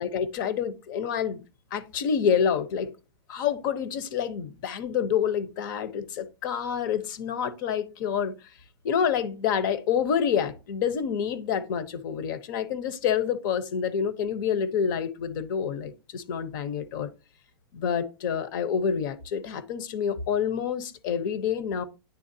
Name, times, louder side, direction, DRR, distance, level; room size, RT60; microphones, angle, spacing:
voice 1, 0.0-1.4 1.7-2.9 3.3-8.3 8.8-17.1 17.7-21.8, left 7 dB, 55° left, 0.9 m, -28 dB
10.0 x 3.5 x 2.7 m
hypercardioid pair, 135°, 13 cm